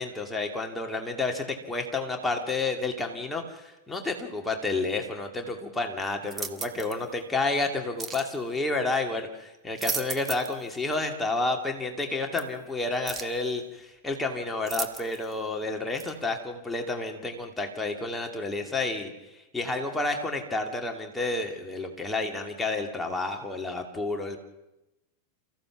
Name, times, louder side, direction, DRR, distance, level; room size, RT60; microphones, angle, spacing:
voice 1, 0.0-24.4, left 3 dB, 10° left, 3 dB, 2.5 m, -30 dB
sound 1, 6.3-7.0 8.0-8.3 9.5-10.6 10.9-11.0 12.4-12.5 13.1-13.4 14.7-15.3 16.0-16.1, right 5 dB, 15° right, 1.5 m, -35 dB
28.5 x 15.5 x 6.1 m, 0.97 s
figure-of-eight pair, 90°, 0 cm